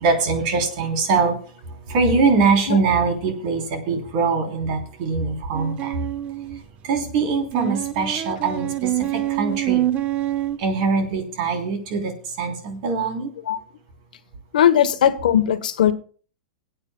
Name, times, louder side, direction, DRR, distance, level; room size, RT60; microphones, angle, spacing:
voice 1, 0.0-1.4 1.9-5.9 6.8-8.9 9.4-9.8 10.6-12.1 12.4-13.3, right 4 dB, 55° right, 3 dB, 3.3 m, -22 dB
sound 1, 5.5-6.6 7.5-10.6, right 13 dB, 30° right, 0.5 m, -25 dB
voice 2, 14.5-15.9, left 10 dB, 85° left, 12 dB, 1.0 m, -18 dB
24.5 x 8.9 x 2.2 m, 0.41 s
supercardioid pair, 140°, 4 cm